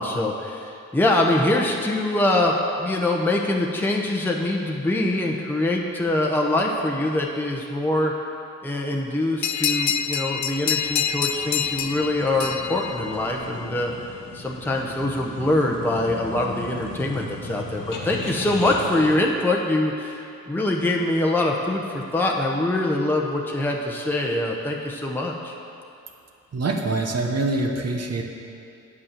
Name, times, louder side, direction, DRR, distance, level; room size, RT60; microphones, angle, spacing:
voice 1, 0.0-8.1 8.6-13.9 14.3-25.5, left 1 dB, 5° left, -1 dB, 0.9 m, -24 dB
sound 1, 9.4-13.7, left 8 dB, 60° left, 0.4 m, -27 dB
sound 2, 10.3-19.2, left 2 dB, 75° left, 1.2 m, -37 dB
voice 2, 26.5-28.2, right 2 dB, 50° right, 2 dB, 1.0 m, -25 dB
8.3 x 5.4 x 7.4 m, 2.6 s
cardioid pair, 65°, 33 cm